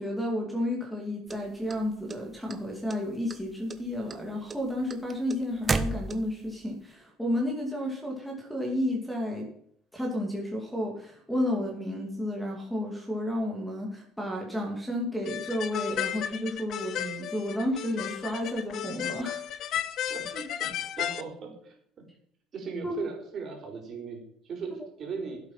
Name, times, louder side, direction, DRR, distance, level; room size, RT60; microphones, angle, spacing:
voice 1, 0.0-9.5 9.9-19.4 22.8-22.9, left 1 dB, ahead, 0 dB, 2.5 m, -32 dB
sound 1, 1.3-2.6 2.9-3.4 3.7-6.5, right 3 dB, 20° right, 1.1 m, -32 dB
sound 2, 15.3-21.2, left 10 dB, 50° left, 0.8 m, -34 dB
voice 2, 20.1-21.7 22.5-25.4, right 5 dB, 40° right, 1 dB, 4.5 m, -38 dB
15.0 x 8.2 x 5.9 m, 0.67 s
cardioid pair, 135°, 0 cm